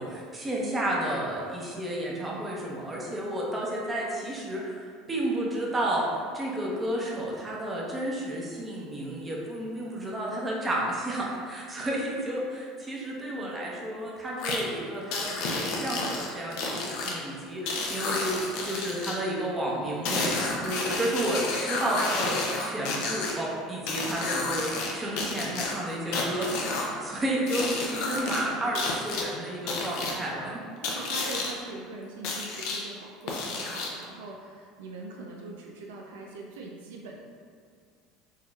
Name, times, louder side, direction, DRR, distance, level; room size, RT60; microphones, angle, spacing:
voice 1, 0.0-18.4 18.6-30.6, right 1 dB, 20° right, -4 dB, 0.9 m, -31 dB
voice 2, 13.2-13.5 28.2-28.8 30.8-37.2, right 2 dB, 80° right, -1 dB, 0.4 m, -42 dB
sound 1, 14.4-14.6 15.1-17.1 17.7-19.2 20.0-23.3 23.9-24.9 25.2-26.9 27.5-28.4 28.7-29.2 29.7-30.1 30.8-31.5 32.2-32.8 33.3-34.0, left 3 dB, 70° left, 0.6 m, -31 dB
4.5 x 2.9 x 2.3 m, 2.1 s
hypercardioid pair, 80°, 0 cm